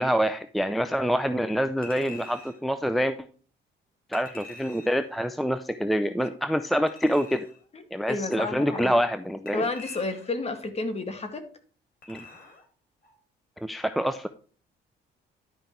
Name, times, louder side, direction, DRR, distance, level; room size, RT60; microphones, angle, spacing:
voice 1, 0.0-3.2 4.1-7.5 7.9-9.7 12.1-12.2 13.6-14.3, equal, ahead, 10 dB, 0.5 m, -26 dB
Chink clink, 1.8-2.6 4.1-5.1 6.9-7.6 9.5-10.4 12.0-12.7 13.0-13.2, left 3 dB, 50° left, 3.7 m, -45 dB
voice 2, 8.1-8.9 9.5-11.4, left 3 dB, 35° left, 7 dB, 2.0 m, -31 dB
11.5 x 5.2 x 4.5 m, 0.41 s
cardioid pair, 95°, 19 cm